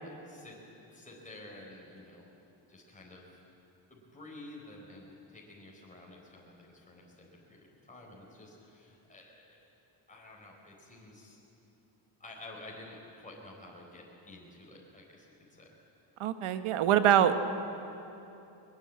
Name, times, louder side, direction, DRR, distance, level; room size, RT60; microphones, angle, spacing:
voice 1, 0.0-2.3 2.7-3.4 3.9-9.6 10.1-11.4 12.2-15.8, left 2 dB, 15° left, -3 dB, 4.5 m, -51 dB
voice 2, 16.2-17.4, right 10 dB, 90° right, 10 dB, 1.3 m, -24 dB
21.5 x 21.0 x 8.6 m, 2.9 s
cardioid pair, 105°, 49 cm